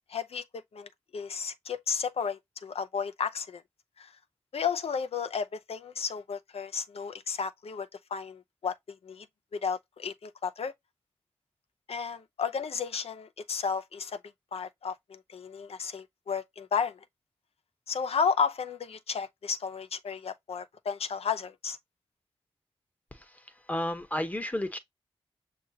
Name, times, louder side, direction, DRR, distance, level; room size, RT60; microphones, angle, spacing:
voice 1, 0.1-0.4 0.7-3.6 4.0-4.1 4.5-9.3 9.5-10.7 11.9-14.2 14.5-17.0 17.9-21.8, left 6 dB, 75° left, 0.6 m, -33 dB
voice 2, 23.7-24.8, left 1 dB, 15° left, 0.9 m, -31 dB
6.4 x 2.3 x 2.7 m
cardioid pair, 60°, 10 cm